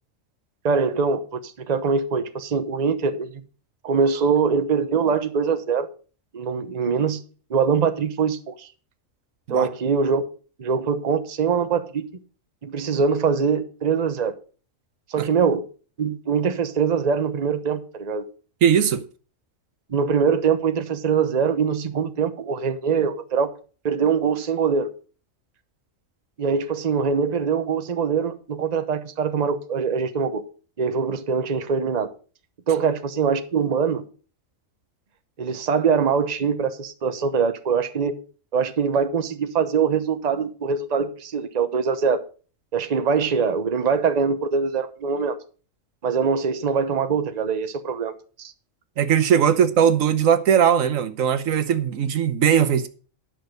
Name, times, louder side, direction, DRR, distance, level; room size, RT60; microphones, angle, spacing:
voice 1, 0.6-3.4 3.8-5.9 6.3-7.2 7.5-8.7 9.5-10.2 10.6-12.0 12.6-14.3 15.1-15.6 16.0-18.2 19.9-23.5 23.8-24.9 26.4-30.4 30.8-32.1 32.7-34.0 35.4-38.2 38.5-42.2 42.7-45.4 46.0-48.5, right 6 dB, 35° right, 0.9 m, -23 dB
voice 2, 18.6-19.0 49.0-52.9, right 8 dB, 80° right, 1.3 m, -19 dB
10.5 x 6.4 x 6.5 m
omnidirectional pair, 1.4 m